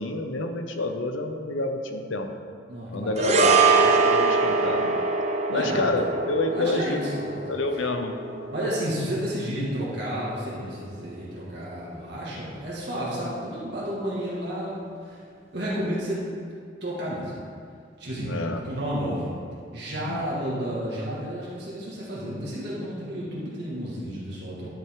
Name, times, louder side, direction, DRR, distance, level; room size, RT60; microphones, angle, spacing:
voice 1, 0.0-2.3 2.9-5.0 5.5-7.0 7.5-8.2 18.2-18.6 20.0-20.2, left 2 dB, 80° left, 5 dB, 0.7 m, -28 dB
voice 2, 2.7-3.4 5.5-5.8 6.5-7.8 8.5-15.2 15.5-16.3 16.8-17.4 18.0-18.3 18.6-19.3 19.7-24.7, equal, 55° right, -7 dB, 1.9 m, -31 dB
sound 1, 3.2-11.6 11.9-12.1, right 4 dB, 35° right, 0.5 m, -25 dB
11.0 x 5.6 x 3.7 m, 2.3 s
head